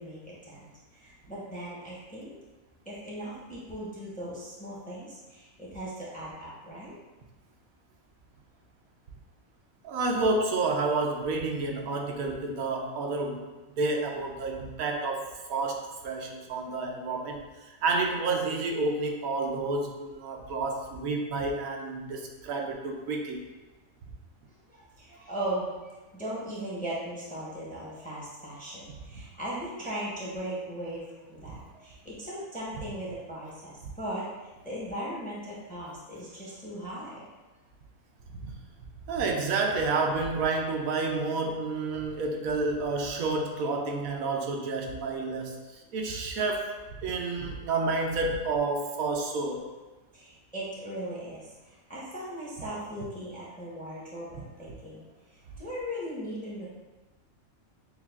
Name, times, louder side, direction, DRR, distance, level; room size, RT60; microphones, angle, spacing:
voice 1, 0.0-2.3 2.9-6.9 24.7-34.2 34.6-37.2 50.1-55.1 55.6-56.7, right 1 dB, 5° left, -6 dB, 0.7 m, -38 dB
voice 2, 9.8-13.5 13.8-17.4 17.7-23.4 38.3-38.5 39.1-45.6 45.9-49.7, right 3 dB, 85° right, 1 dB, 1.1 m, -30 dB
6.9 x 2.3 x 2.3 m, 1.2 s
omnidirectional pair, 1.5 m